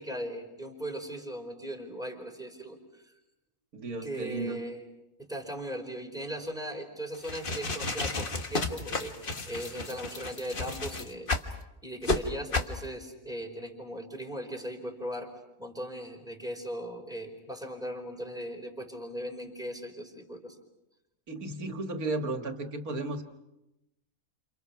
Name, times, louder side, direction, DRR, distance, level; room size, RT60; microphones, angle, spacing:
voice 1, 0.0-3.1 4.0-4.8 5.2-11.3 11.8-15.3 15.6-20.6, equal, ahead, 2 dB, 4.6 m, -38 dB
voice 2, 3.7-4.6 21.3-23.2, right 2 dB, 90° right, 6 dB, 2.4 m, -34 dB
sound 1, 7.1-11.5 12.0-12.2 12.5-12.8, left 2 dB, 40° left, 1.7 m, -32 dB
30.0 x 28.5 x 5.9 m, 0.92 s
omnidirectional pair, 1.5 m